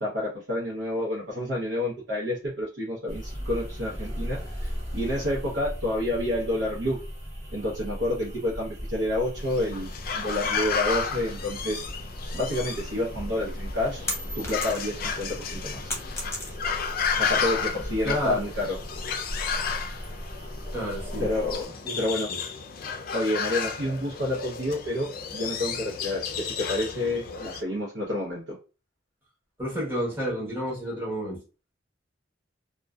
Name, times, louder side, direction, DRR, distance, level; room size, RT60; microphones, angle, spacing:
voice 1, 0.0-7.0 7.5-11.8 12.3-15.9 17.2-18.8 21.2-22.3 23.1-28.6, left 1 dB, 85° right, -4 dB, 0.7 m, -29 dB
sound 1, 3.1-21.7, equal, 35° right, 1.1 m, -37 dB
sound 2, 9.4-27.6, left 6 dB, 50° left, 0.4 m, -33 dB
sound 3, 14.1-15.1 15.4-16.9, left 1 dB, 15° left, 0.7 m, -34 dB
voice 2, 18.0-18.4 20.7-21.3 21.8-22.0 22.3-22.4 29.6-31.4, equal, 10° right, -6 dB, 1.0 m, -30 dB
2.6 x 2.2 x 2.2 m, 0.33 s
head